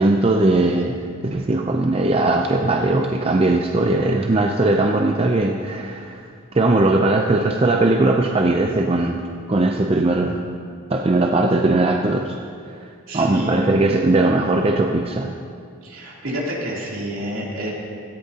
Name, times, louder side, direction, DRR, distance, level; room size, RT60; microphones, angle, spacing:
voice 1, 0.0-6.3 6.5-9.2 9.5-10.4 10.9-12.4 12.7-12.8 13.1-15.3, right 2 dB, 25° right, 3 dB, 0.5 m, -19 dB
voice 2, 13.1-13.8 15.8-17.7, equal, 65° right, -5 dB, 3.2 m, -28 dB
17.5 x 14.0 x 2.9 m, 2.3 s
head